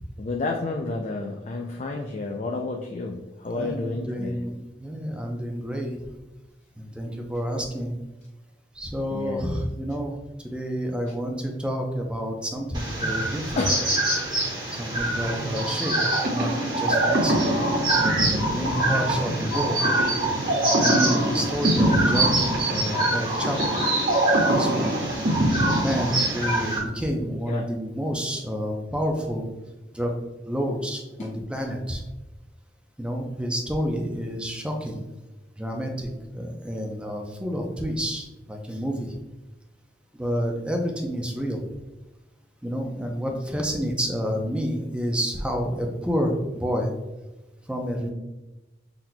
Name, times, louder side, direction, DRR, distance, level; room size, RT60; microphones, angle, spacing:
voice 1, 0.2-4.4 9.1-9.4 13.6-13.8 27.5-27.6 31.2-31.3, left 3 dB, 40° left, 1 dB, 0.4 m, -30 dB
voice 2, 3.5-6.0 6.8-7.9 8.8-10.1 10.5-13.6 14.8-16.0 16.2-17.6 17.9-19.8 20.8-23.8 24.4-25.0 25.6-29.4 29.9-30.1 30.4-32.0 33.0-35.0 35.6-39.1 40.1-41.6 42.6-46.9 47.7-48.1, equal, 5° right, 2 dB, 0.6 m, -29 dB
sound 1, 12.7-26.8, right 2 dB, 25° right, 1.4 m, -26 dB
sound 2, 16.0-26.6, right 1 dB, 55° right, 0.8 m, -25 dB
6.0 x 3.9 x 2.2 m, 1.1 s
head